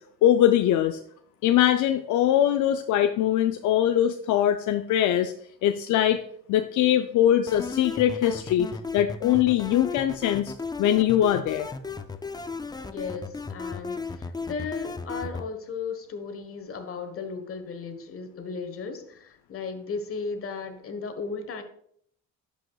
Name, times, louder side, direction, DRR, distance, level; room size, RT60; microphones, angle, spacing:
voice 1, 0.2-1.0 1.4-5.3 5.6-6.2 6.5-10.5 10.8-11.7, left 11 dB, 75° left, 8 dB, 0.5 m, -22 dB
sound 1, 7.5-15.5, left 4 dB, 15° left, 0.4 m, -35 dB
voice 2, 12.9-21.6, left 5 dB, 45° left, 8 dB, 1.3 m, -35 dB
11.5 x 5.0 x 2.3 m, 0.65 s
cardioid pair, 90°, 30 cm